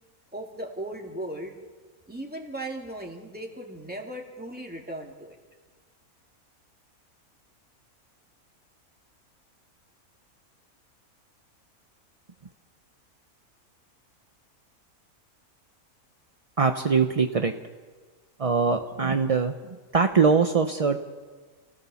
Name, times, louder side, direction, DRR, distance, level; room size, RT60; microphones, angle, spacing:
voice 1, 0.3-1.5 2.1-5.4, right 1 dB, 5° right, 0 dB, 2.5 m, -37 dB
voice 2, 16.6-17.5 18.4-21.0, right 5 dB, 35° right, 7 dB, 0.6 m, -22 dB
28.5 x 16.5 x 7.0 m, 1.5 s
omnidirectional pair, 1.6 m